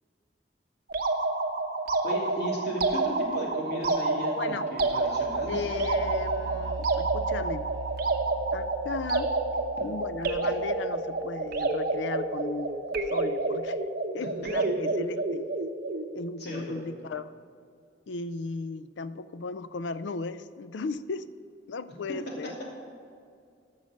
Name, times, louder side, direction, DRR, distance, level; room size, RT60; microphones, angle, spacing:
sound 1, 0.9-16.1, right 3 dB, 55° right, 0.9 m, -29 dB
voice 1, 2.0-5.7 16.4-16.8, right 1 dB, 65° left, -3 dB, 2.8 m, -35 dB
voice 2, 4.4-4.7 5.5-7.7 8.5-9.3 9.8-13.8 14.1-15.5 16.1-17.3 18.1-21.3 21.7-22.5, left 4 dB, 85° left, 14 dB, 0.5 m, -36 dB
sound 2, 4.9-12.6, right 4 dB, 75° right, 0.6 m, -41 dB
12.5 x 6.5 x 6.5 m, 2.3 s
head